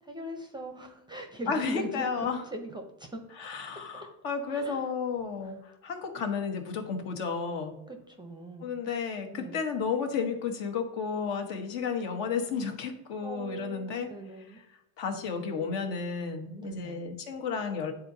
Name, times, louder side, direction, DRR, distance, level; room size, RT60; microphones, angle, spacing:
voice 1, 0.0-2.2 2.5-3.3 3.9-4.1 4.5-4.9 5.4-5.6 6.1-6.2 7.9-8.7 9.3-9.6 13.2-14.6 16.6-17.1, right 2 dB, 10° right, 4 dB, 0.6 m, -41 dB
voice 2, 1.5-2.4 3.4-7.8 8.6-14.1 15.0-17.9, left 5 dB, 60° left, 4 dB, 1.4 m, -32 dB
10.0 x 3.9 x 2.7 m, 0.84 s
supercardioid pair, 115°, 50 cm